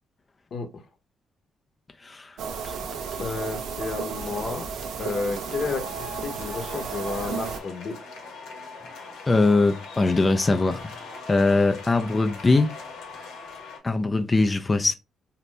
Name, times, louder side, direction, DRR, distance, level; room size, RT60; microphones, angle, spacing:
voice 1, 0.5-0.8 3.2-4.7 5.0-8.0, left 4 dB, 55° left, 0.8 m, -31 dB
voice 2, 2.0-2.4 2.6-2.7 9.3-11.0 11.3-12.7 13.8-14.9, left 3 dB, 25° left, 0.4 m, -21 dB
sound 1, 2.4-7.6, right 6 dB, 75° right, 0.4 m, -33 dB
sound 2, 2.5-13.8, left 3 dB, 85° left, 1.0 m, -42 dB
2.7 x 2.0 x 3.2 m
cardioid pair, 90°, 0 cm